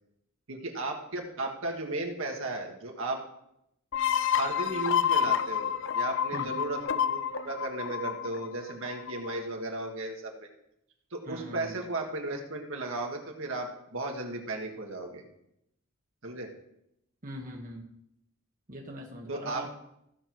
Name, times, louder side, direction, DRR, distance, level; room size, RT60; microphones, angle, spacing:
voice 1, 0.5-3.2 4.4-10.3 11.1-15.2 16.2-16.5 19.3-19.7, right 2 dB, 65° right, 2 dB, 1.8 m, -35 dB
sound 1, 3.9-9.4, left 8 dB, 60° left, 0.6 m, -29 dB
voice 2, 6.3-6.6 11.2-11.8 17.2-17.8 18.7-19.7, equal, 40° right, 0 dB, 1.4 m, -41 dB
15.0 x 6.7 x 4.6 m, 0.78 s
head